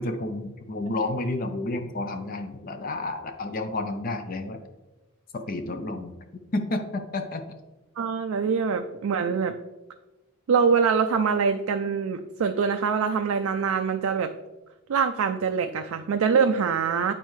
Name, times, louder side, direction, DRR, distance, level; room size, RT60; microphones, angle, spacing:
voice 1, 0.0-4.6 5.3-7.5, left 2 dB, 40° left, 7 dB, 0.5 m, -31 dB
voice 2, 8.0-9.6 10.5-14.3 14.9-17.1, right 6 dB, 80° right, 6 dB, 0.4 m, -24 dB
9.1 x 4.4 x 3.1 m, 1.1 s
head